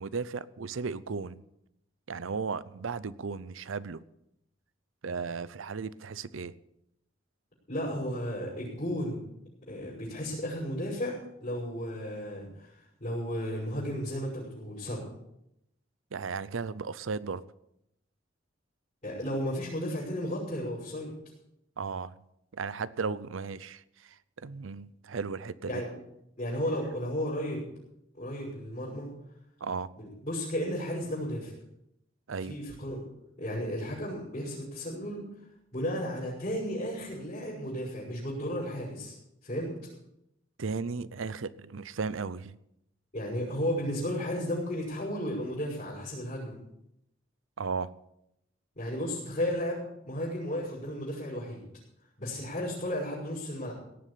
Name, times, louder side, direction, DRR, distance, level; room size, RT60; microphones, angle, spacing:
voice 1, 0.0-1.4 2.1-4.0 5.0-6.5 16.1-17.4 21.8-22.2 22.5-25.8 29.6-29.9 32.3-32.6 40.6-42.6 47.6-47.9, right 4 dB, 90° right, 18 dB, 0.6 m, -35 dB
voice 2, 7.7-9.3 9.7-15.0 19.0-21.1 25.7-25.9 26.4-27.7 28.1-29.1 30.0-31.5 32.4-33.0 33.4-35.2 35.7-39.1 39.4-39.7 43.1-46.5 48.7-51.6 52.2-53.7, equal, 40° left, -7 dB, 6.2 m, -34 dB
17.5 x 7.5 x 8.5 m, 0.82 s
head